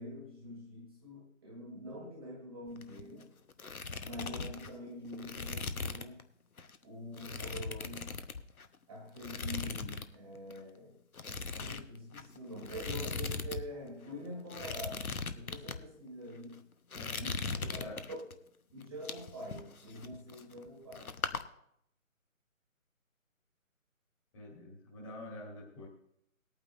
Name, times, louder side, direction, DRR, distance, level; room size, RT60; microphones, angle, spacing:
voice 1, 0.0-3.3 4.0-6.2 6.8-8.2 8.9-11.0 11.4-16.6 17.1-17.3 17.7-18.3 18.7-21.1, equal, 20° right, -1 dB, 1.2 m, -45 dB
sound 1, 2.7-3.2 3.5-6.2 6.6-6.8 7.2-8.8 9.2-10.1 10.4-10.6 11.1-13.6 13.9-14.0 14.5-15.8 16.4-16.6 16.9-18.3 18.8-20.7 20.9-21.4, left 4 dB, 90° left, 1.0 m, -39 dB
voice 2, 16.9-18.1 24.3-25.9, left 1 dB, 20° left, -3 dB, 2.4 m, -47 dB
20.0 x 8.9 x 2.5 m, 0.75 s
figure-of-eight pair, 160°, 42 cm